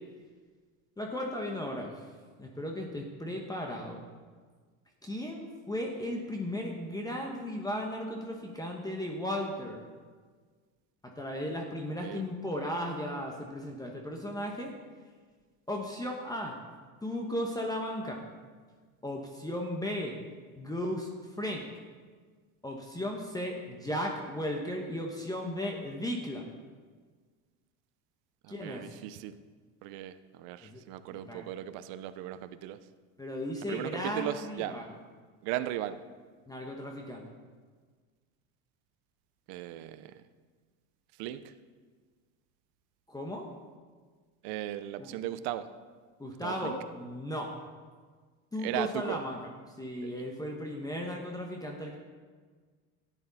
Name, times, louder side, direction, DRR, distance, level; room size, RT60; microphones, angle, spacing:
voice 1, 1.0-1.9 2.4-4.0 5.0-9.8 11.0-14.7 15.7-16.6 17.0-18.2 19.0-20.2 20.6-21.1 21.4-21.6 22.6-26.5 28.5-28.9 30.6-30.8 31.1-31.5 33.2-34.9 36.5-37.2 43.1-43.5 45.0-45.1 46.2-47.5 48.5-49.4 49.8-52.0, left 1 dB, 10° left, 1 dB, 1.1 m, -36 dB
voice 2, 19.8-20.1 28.4-29.4 29.8-32.8 33.7-34.8 35.4-36.0 39.5-40.2 41.2-41.5 44.4-45.7 46.4-46.8 48.6-49.2 50.0-50.2, right 13 dB, 65° right, 12 dB, 0.8 m, -37 dB
12.5 x 10.0 x 4.1 m, 1.5 s
supercardioid pair, 120°, 41 cm